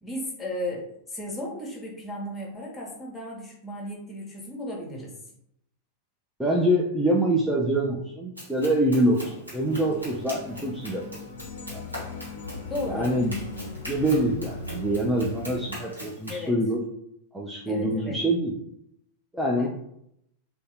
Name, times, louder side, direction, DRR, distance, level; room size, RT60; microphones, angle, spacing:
voice 1, 0.0-5.1 12.7-13.2 16.3-16.6 17.7-18.2 19.6-19.7, left 1 dB, 10° left, -1 dB, 0.9 m, -35 dB
voice 2, 6.4-11.3 11.7-11.8 12.9-13.4 13.9-16.8 17.3-18.6 19.3-19.7, right 1 dB, 5° right, -4 dB, 0.4 m, -25 dB
Run, 8.4-16.5, equal, 85° right, 1.0 m, -41 dB
sound 1, 9.6-15.7, left 3 dB, 60° left, 0.6 m, -39 dB
2.7 x 2.2 x 3.2 m, 0.74 s
figure-of-eight pair, 90°, 0 cm